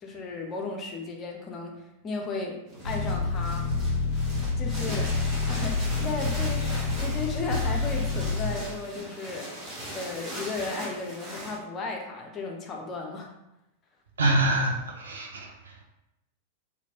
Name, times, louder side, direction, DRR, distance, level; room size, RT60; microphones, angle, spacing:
voice 1, 0.0-2.6 2.8-3.7 4.6-5.1 5.5-9.5 9.9-13.3, left 3 dB, 25° left, 1 dB, 0.6 m, -35 dB
sound 1, 2.7-11.6, equal, 25° right, 1.2 m, -39 dB
sound 2, 2.8-8.5, left 3 dB, 80° left, 0.4 m, -28 dB
voice 2, 14.2-15.8, right 1 dB, 70° right, 1 dB, 0.5 m, -26 dB
2.9 x 2.5 x 2.8 m, 0.88 s
figure-of-eight pair, 90°, 0 cm